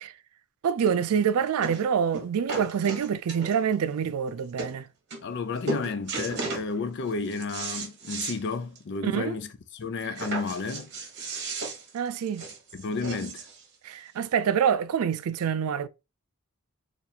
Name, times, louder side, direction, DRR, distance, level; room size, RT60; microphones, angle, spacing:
voice 1, 0.6-4.8 9.0-9.4 11.9-12.5 13.8-15.9, right 7 dB, 85° right, 0.4 m, -26 dB
sound 1, 0.9-1.0 1.6-1.9 2.1-3.7 4.3-4.4 4.6-4.7 5.1-5.4 5.7-6.7 7.1-8.4 8.8-8.9 9.2-9.3 10.2-13.6 14.4-14.5, right 3 dB, 55° right, 1.1 m, -35 dB
voice 2, 5.2-10.9 12.7-13.5, left 4 dB, 55° left, 0.4 m, -32 dB
4.0 x 2.5 x 2.8 m
head